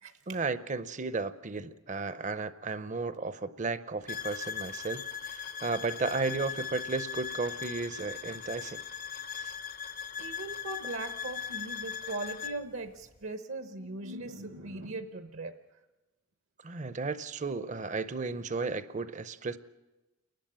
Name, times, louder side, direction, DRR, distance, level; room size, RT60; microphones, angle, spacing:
voice 1, 0.3-8.8 9.4-9.5 16.6-19.6, right 4 dB, 35° right, 14 dB, 0.6 m, -34 dB
sound 1, 4.1-12.6, left 7 dB, 40° left, 0.6 m, -39 dB
voice 2, 10.2-15.5, right 2 dB, 65° right, 8 dB, 0.9 m, -39 dB
29.0 x 11.5 x 8.9 m, 1.1 s
head